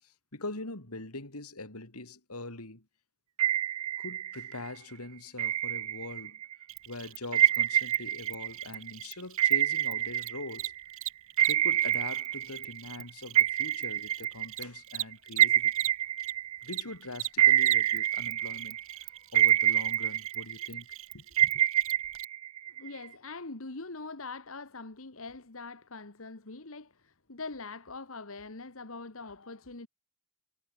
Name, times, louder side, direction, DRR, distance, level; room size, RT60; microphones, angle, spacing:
voice 1, 0.0-2.9 4.0-6.4 6.9-10.7 11.4-15.7 16.6-20.9 21.1-21.6, left 2 dB, 85° left, 4.4 m, -43 dB
sound 1, 3.4-4.7 5.4-6.5 7.3-10.9 11.4-13.0 13.3-16.9 17.4-18.9 19.3-20.9 21.4-23.1, right 12 dB, 90° right, 0.7 m, -27 dB
Cricket, 6.7-16.3 16.6-22.2, right 15 dB, 65° right, 2.9 m, -41 dB
voice 2, 22.8-29.9, left 3 dB, 65° left, 1.6 m, -43 dB
head